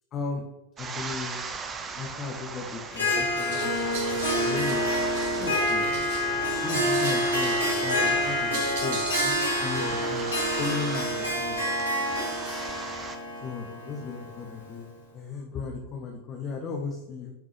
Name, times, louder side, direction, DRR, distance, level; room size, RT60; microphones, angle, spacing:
voice 1, 0.1-0.4 0.8-1.4 2.0-3.7 4.1-4.8 5.4-5.8 6.6-9.4 9.6-10.3 10.6-11.6 13.4-14.9 15.1-17.3, left 4 dB, 30° left, 0 dB, 0.8 m, -35 dB
sound 1, 0.8-13.2, right 5 dB, 25° right, 0.6 m, -39 dB
Harp, 2.9-14.8, equal, 75° left, 1.5 m, -27 dB
sound 2, 3.4-10.6, right 4 dB, 50° right, 1.1 m, -39 dB
10.5 x 3.6 x 3.2 m, 1.0 s
figure-of-eight pair, 90°, 0 cm